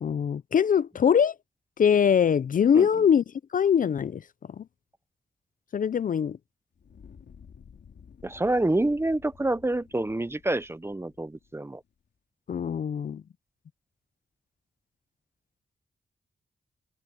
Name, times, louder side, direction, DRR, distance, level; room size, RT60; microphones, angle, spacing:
voice 1, 0.0-1.4 1.8-3.2 3.5-4.2 4.6-4.7 5.7-6.4 12.5-13.2, left 7 dB, 50° left, 0.4 m, -22 dB
Fire, 6.7-11.9, left 7 dB, 75° left, 3.0 m, -53 dB
voice 2, 8.2-11.8, right 2 dB, 15° right, 0.7 m, -27 dB
wide cardioid pair, 120°, 18 cm